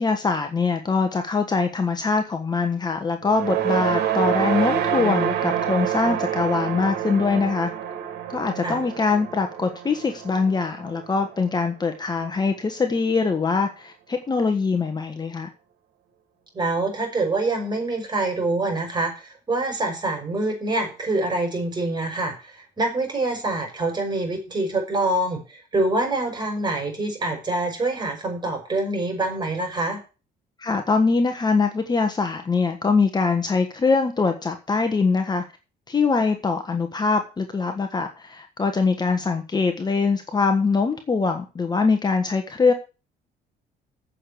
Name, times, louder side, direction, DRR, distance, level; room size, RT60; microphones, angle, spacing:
voice 1, 0.0-7.7 8.3-15.5 30.6-35.4 35.9-42.7, left 4 dB, 25° left, 6 dB, 1.4 m, -23 dB
sound 1, 3.2-11.6, right 10 dB, 85° right, 2.3 m, -27 dB
voice 2, 16.5-30.0, right 2 dB, 25° right, 3 dB, 5.6 m, -25 dB
8.6 x 6.8 x 8.4 m, 0.32 s
cardioid pair, 110°, 17 cm